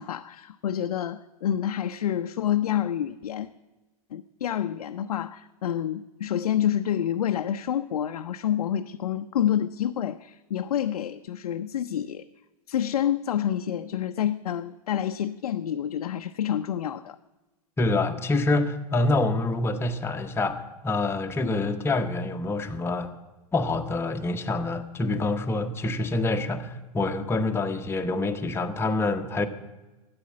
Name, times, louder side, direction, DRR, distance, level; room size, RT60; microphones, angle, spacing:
voice 1, 0.0-3.5 4.1-12.3 12.7-17.2, left 10 dB, 80° left, 7 dB, 0.6 m, -28 dB
voice 2, 17.8-23.1 23.5-29.5, left 2 dB, 15° left, 5 dB, 1.0 m, -26 dB
13.0 x 9.7 x 7.5 m, 1.1 s
hypercardioid pair, 120°, 19 cm